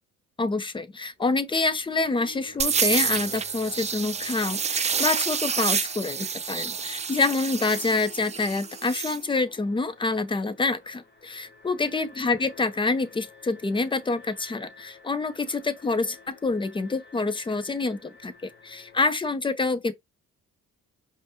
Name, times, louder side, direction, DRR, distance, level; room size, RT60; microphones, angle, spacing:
voice 1, 0.4-18.3 18.6-19.9, left 3 dB, 15° left, 0.6 m, -27 dB
Alarm, 1.2-19.1, left 4 dB, 35° left, 1.1 m, -50 dB
sound 1, 2.6-9.2, right 6 dB, 25° right, 0.4 m, -28 dB
5.1 x 2.2 x 2.8 m
cardioid pair, 90°, 30 cm